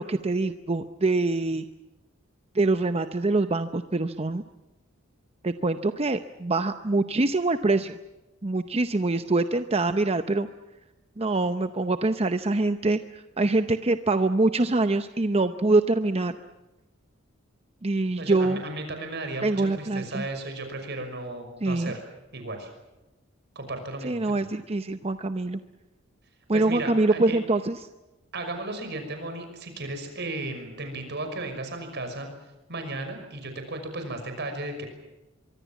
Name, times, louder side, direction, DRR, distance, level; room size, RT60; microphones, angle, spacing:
voice 1, 0.0-1.6 2.5-4.4 5.4-8.0 8.4-10.5 11.2-16.3 17.8-18.6 19.4-20.3 21.6-21.9 24.0-25.6 26.5-27.8, right 2 dB, 30° right, 9 dB, 0.8 m, -24 dB
voice 2, 18.2-22.0 22.3-22.7 23.6-24.5 26.5-27.4 28.3-32.3 32.7-34.9, right 2 dB, 55° right, 6 dB, 5.8 m, -35 dB
24.5 x 23.5 x 7.3 m, 1.0 s
head